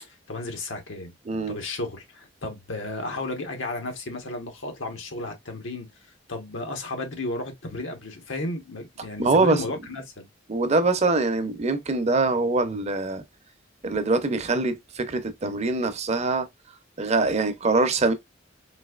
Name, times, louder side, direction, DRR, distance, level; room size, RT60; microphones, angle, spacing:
voice 1, 0.1-1.1 1.5-5.9 6.3-10.3, left 2 dB, 85° left, 1.1 m, -33 dB
voice 2, 1.3-1.6 9.2-9.6 10.5-13.2 13.8-16.5 17.0-18.1, right 3 dB, 35° right, 0.6 m, -23 dB
4.0 x 2.7 x 2.3 m
head